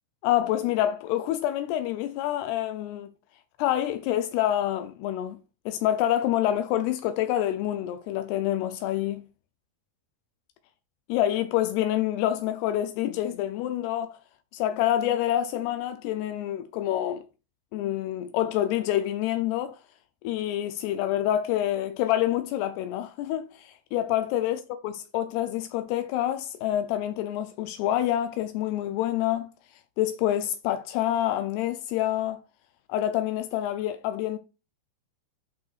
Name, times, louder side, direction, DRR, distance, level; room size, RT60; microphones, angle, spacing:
voice 1, 0.2-3.1 3.6-5.4 5.7-9.2 11.1-14.2 14.5-17.2 17.7-19.8 20.2-29.5 30.0-32.4 32.9-34.4, left 12 dB, 85° left, 2.6 m, -27 dB
8.9 x 5.6 x 2.4 m
omnidirectional pair, 4.7 m